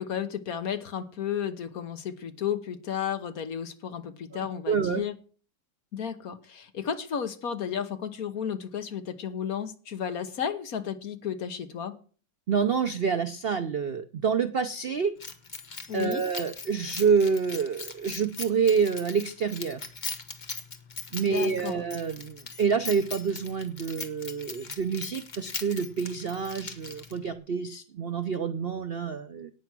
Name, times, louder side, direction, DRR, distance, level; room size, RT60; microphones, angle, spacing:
voice 1, 0.0-5.1 5.9-12.0 15.9-16.2 21.2-21.8, left 8 dB, 55° left, 9 dB, 1.4 m, -33 dB
voice 2, 4.3-5.0 12.5-15.1 15.9-19.8 21.1-29.5, right 6 dB, 75° right, 10 dB, 0.5 m, -27 dB
Keys jangling, 15.2-27.3, left 4 dB, 30° left, 1.2 m, -40 dB
18.0 x 6.0 x 6.0 m, 0.40 s
omnidirectional pair, 1.9 m